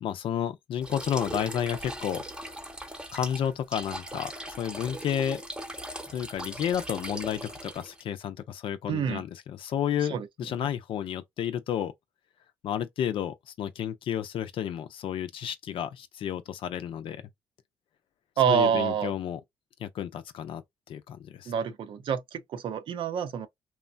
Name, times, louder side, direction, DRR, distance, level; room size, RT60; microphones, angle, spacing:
voice 1, 0.0-2.2 3.1-5.4 6.1-11.9 12.6-17.2 18.5-19.4 19.8-20.6 20.9-21.5, left 9 dB, 70° left, 0.5 m, -31 dB
sound 1, 0.8-8.0, right 1 dB, 10° right, 0.8 m, -39 dB
voice 2, 8.9-9.2 10.1-10.3 18.4-19.1 21.5-23.5, right 7 dB, 65° right, 0.6 m, -27 dB
3.0 x 2.1 x 2.5 m
supercardioid pair, 65°, 9 cm